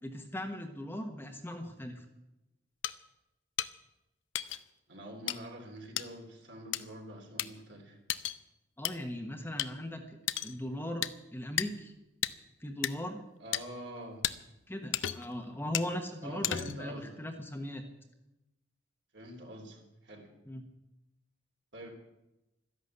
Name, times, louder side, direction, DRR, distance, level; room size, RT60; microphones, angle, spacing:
voice 1, 0.0-2.0 8.8-10.2 10.4-11.1 11.3-11.9 12.6-13.2 14.7-17.8 20.5-20.6, left 1 dB, 10° left, 4 dB, 1.2 m, -39 dB
sound 1, 2.8-2.9 3.6-3.7 4.3-4.6 5.3-5.4 6.0-6.1 6.7-6.8 7.4-7.5 8.1-8.4 8.8-8.9 9.6-9.7 10.3-10.5 11.0-11.1 11.6-11.7 12.2-12.3 12.8-12.9 13.5-13.6 14.2-14.3 14.9-15.3 15.7-15.9 16.4-16.8, left 12 dB, 75° left, 0.6 m, -33 dB
voice 2, 4.9-8.0 13.4-14.3 16.2-17.2 19.1-20.3 21.7-21.9, equal, 60° right, 2 dB, 3.4 m, -46 dB
13.5 x 11.0 x 7.9 m, 0.95 s
head